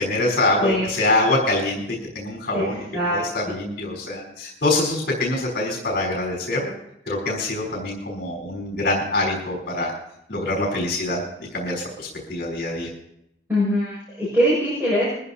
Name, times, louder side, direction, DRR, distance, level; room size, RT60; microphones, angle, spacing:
voice 1, 0.0-2.8 3.1-6.7 7.1-9.9 10.3-11.2 11.5-12.9, left 2 dB, 60° left, -5 dB, 4.3 m, -24 dB
voice 2, 2.9-3.5 13.5-15.1, equal, 10° right, -10 dB, 6.7 m, -22 dB
22.0 x 14.5 x 2.8 m, 0.78 s
head